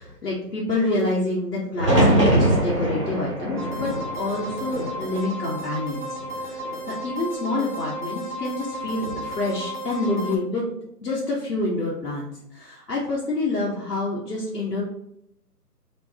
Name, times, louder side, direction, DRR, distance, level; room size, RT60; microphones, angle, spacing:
voice 1, 0.0-6.1 6.3-10.6 11.0-14.8, left 2 dB, 65° left, -5 dB, 1.0 m, -27 dB
sound 1, 1.8-5.8 6.2-6.9 8.8-9.3, right 1 dB, 20° right, 0.6 m, -23 dB
sound 2, 3.6-10.4, equal, 30° left, 0.5 m, -34 dB
4.2 x 2.1 x 3.4 m, 0.78 s
figure-of-eight pair, 150°, 48 cm